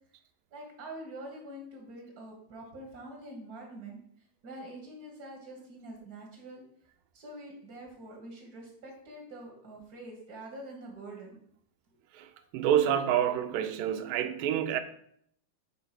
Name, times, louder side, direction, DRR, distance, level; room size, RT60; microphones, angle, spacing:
voice 1, 0.5-4.0 4.4-6.6 7.1-11.4, right 1 dB, 45° right, 1.3 m, -45 dB
voice 2, 12.1-14.8, right 10 dB, 90° right, 2.4 m, -28 dB
7.7 x 4.0 x 5.8 m
omnidirectional pair, 3.9 m